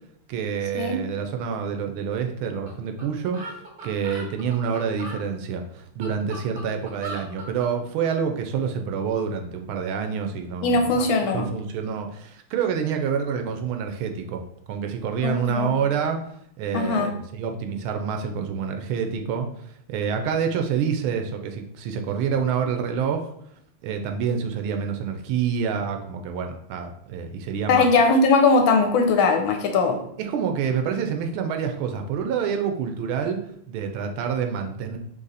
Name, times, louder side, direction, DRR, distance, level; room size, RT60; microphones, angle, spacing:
voice 1, 0.3-10.9 11.3-14.4 14.7-16.2 16.6-23.3 23.8-27.8 30.2-33.4 33.7-35.0, right 7 dB, 80° right, 5 dB, 1.4 m, -27 dB
sound 1, 2.7-2.8 3.0-3.1 3.3-5.2 5.8-7.7, right 2 dB, 45° right, 0.7 m, -38 dB
voice 2, 10.6-11.5 15.2-15.8 16.7-17.1 27.7-30.0, left 3 dB, 75° left, 4 dB, 1.3 m, -20 dB
4.0 x 3.1 x 3.9 m, 0.70 s
omnidirectional pair, 2.4 m